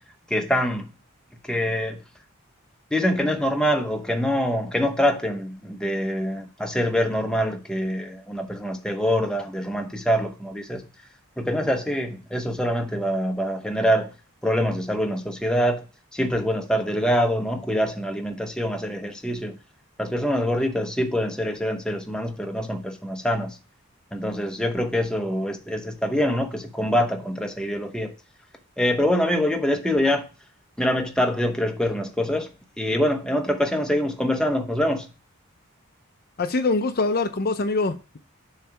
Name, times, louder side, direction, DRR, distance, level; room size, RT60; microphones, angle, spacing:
voice 1, 0.3-0.9 1.4-2.0 2.9-10.8 11.4-14.1 14.4-15.9 16.1-19.6 20.0-23.6 24.1-28.1 28.8-30.3 30.8-32.5 32.8-35.1, equal, 5° left, 0.7 m, -24 dB
voice 2, 36.4-38.2, left 3 dB, 45° left, 0.6 m, -24 dB
7.0 x 3.3 x 5.7 m
head